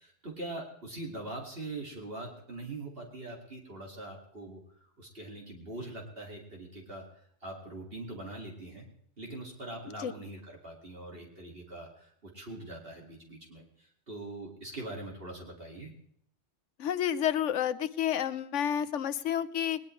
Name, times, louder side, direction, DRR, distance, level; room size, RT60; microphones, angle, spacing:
voice 1, 0.0-4.6 5.0-7.1 7.4-8.8 9.2-15.9, right 2 dB, 50° right, 0 dB, 2.5 m, -42 dB
voice 2, 16.8-19.8, left 10 dB, 75° left, 13 dB, 1.1 m, -30 dB
20.0 x 19.5 x 3.2 m, 0.65 s
omnidirectional pair, 1.3 m